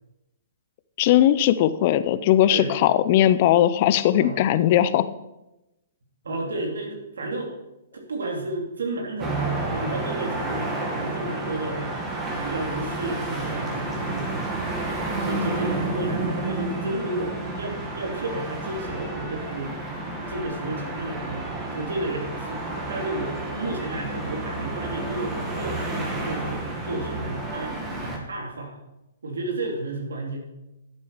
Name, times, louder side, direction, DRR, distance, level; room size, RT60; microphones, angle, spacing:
voice 1, 1.0-5.1, left 12 dB, 40° left, 14 dB, 0.6 m, -19 dB
voice 2, 6.2-7.5 7.9-12.0 12.3-14.5 15.2-19.8 20.3-28.8 29.2-30.5, right 2 dB, 90° right, 2 dB, 3.0 m, -32 dB
sound 1, 9.2-28.2, right 2 dB, 15° right, 1.9 m, -30 dB
11.5 x 8.3 x 4.9 m, 0.95 s
hypercardioid pair, 145°, 0 cm